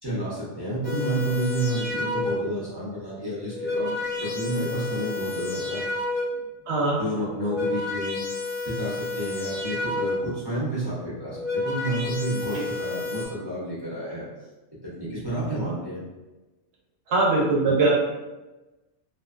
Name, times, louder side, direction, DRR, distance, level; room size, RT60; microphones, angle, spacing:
voice 1, 0.0-5.8 7.0-8.2 8.6-14.3 14.9-16.0, right 1 dB, 25° right, -9 dB, 0.6 m, -30 dB
sound 1, 0.8-2.6 3.3-6.5 7.3-10.4 11.2-13.3, left 2 dB, 10° left, 0.6 m, -30 dB
voice 2, 6.7-7.0 17.1-17.9, right 3 dB, 65° right, -2 dB, 0.9 m, -21 dB
2.6 x 2.2 x 2.4 m, 1.1 s
omnidirectional pair, 1.2 m